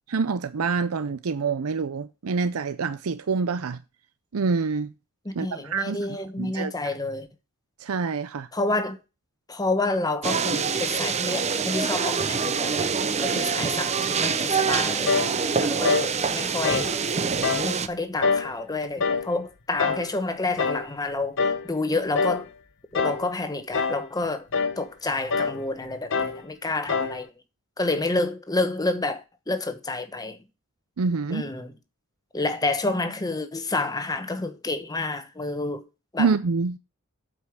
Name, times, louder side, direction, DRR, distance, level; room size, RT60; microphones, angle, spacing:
voice 1, 0.1-3.8 4.3-4.9 5.4-6.0 6.4-6.7 7.8-8.5 31.0-31.5 36.2-36.8, right 4 dB, 90° right, 0.6 m, -26 dB
voice 2, 5.2-7.3 8.5-9.0 9.5-12.9 13.2-17.0 17.6-22.5 22.9-24.5 24.8-27.3 27.8-30.4 31.3-31.7 32.3-35.9 36.1-36.3, left 2 dB, 20° left, 1.0 m, -29 dB
sound 1, 10.2-17.9, right 5 dB, 30° right, 0.7 m, -25 dB
sound 2, 15.1-15.3 15.8-16.1 16.6-16.9 17.4-17.7 18.2-18.5 19.0-19.3 19.8-20.1 20.6-20.9 21.4-21.7 22.1-22.4 22.9-23.3 23.7-24.1 24.5-24.8 25.3-25.6 26.1-26.4 26.9-27.2, left 4 dB, 60° left, 0.9 m, -25 dB
8.3 x 5.2 x 6.1 m
head